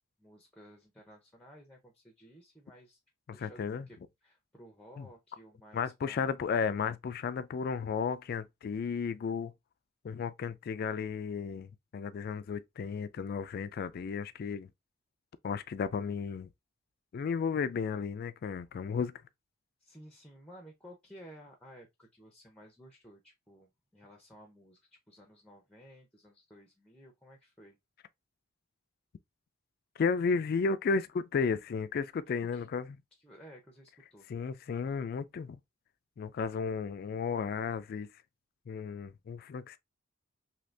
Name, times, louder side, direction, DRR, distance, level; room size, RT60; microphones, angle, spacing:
voice 1, 0.2-3.0 3.3-6.4 19.8-27.8 32.5-32.7 33.2-34.3, equal, 5° left, 0.6 m, -55 dB
voice 2, 3.3-3.9 5.0-5.1 5.7-9.5 10.0-14.7 15.4-16.5 17.1-19.2 30.0-32.9 34.3-35.6 36.2-38.1 38.7-39.8, left 5 dB, 50° left, 0.3 m, -33 dB
2.8 x 2.6 x 3.2 m
head